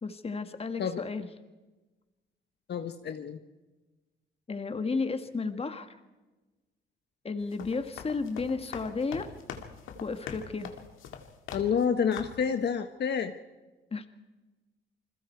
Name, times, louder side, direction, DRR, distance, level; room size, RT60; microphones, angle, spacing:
voice 1, 0.0-1.3 4.5-6.0 7.2-9.3 10.0-10.7 13.9-14.1, left 4 dB, 30° left, 8 dB, 1.8 m, -33 dB
voice 2, 2.7-3.4 11.5-13.3, left 7 dB, 60° left, 7 dB, 1.3 m, -29 dB
sound 1, 7.4-11.9 12.1-12.5, left 8 dB, 85° left, 2.3 m, -43 dB
28.5 x 21.5 x 4.6 m, 1.2 s
cardioid pair, 90°, 20 cm